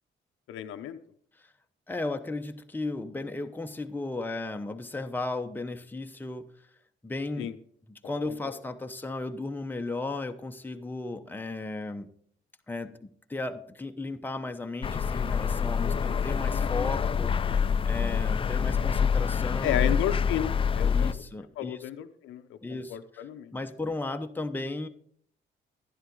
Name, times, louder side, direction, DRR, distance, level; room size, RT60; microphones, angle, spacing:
voice 1, 0.5-1.0 7.4-7.5 8.4-8.5 16.1-16.2 19.6-21.1 21.6-23.5, left 11 dB, 85° left, 7 dB, 0.7 m, -33 dB
voice 2, 1.9-6.5 7.0-7.5 7.9-12.1 12.7-17.6 17.8-19.9 20.8-21.8 22.6-23.3 23.5-24.9, left 2 dB, 10° left, 5 dB, 0.8 m, -35 dB
sound 1, 14.8-21.1, left 6 dB, 25° left, 0.4 m, -26 dB
11.5 x 10.5 x 3.8 m, 0.62 s
cardioid pair, 90°, 20 cm